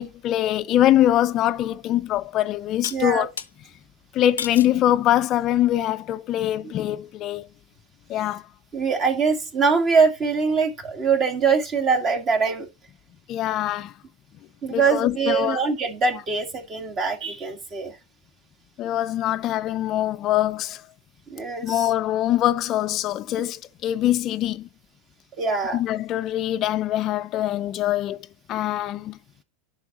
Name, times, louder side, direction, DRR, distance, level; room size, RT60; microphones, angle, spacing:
voice 1, 0.0-3.3 4.1-7.5 8.1-8.4 13.3-13.9 14.7-15.6 18.8-20.8 21.6-24.7 25.7-28.2 28.5-29.2, left 12 dB, 40° left, 0.4 m, -23 dB
sound 1, 1.5-1.6 2.8-3.5 4.4-4.8 5.4-5.8, left 8 dB, 90° left, 0.6 m, -34 dB
voice 2, 2.9-3.3 8.7-12.7 14.6-17.9 21.3-21.9 25.4-25.8, right 5 dB, 35° right, 1.8 m, -23 dB
11.0 x 4.8 x 2.9 m
hypercardioid pair, 100°, 0 cm